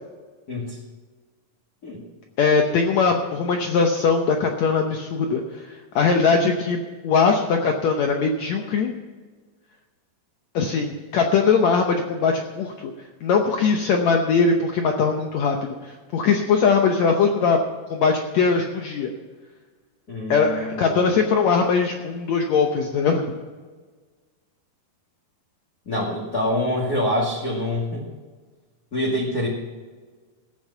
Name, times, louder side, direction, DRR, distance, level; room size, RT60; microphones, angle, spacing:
voice 1, 0.5-0.8 1.8-2.0 20.1-21.1 25.9-28.0 28.9-29.5, left 1 dB, 30° left, -4 dB, 2.0 m, -26 dB
voice 2, 2.4-8.9 10.5-12.9 13.2-15.6 15.8-17.6 17.9-19.1 20.3-23.3, left 5 dB, 85° left, 3 dB, 1.5 m, -21 dB
16.0 x 8.6 x 5.6 m, 1.4 s
omnidirectional pair, 4.5 m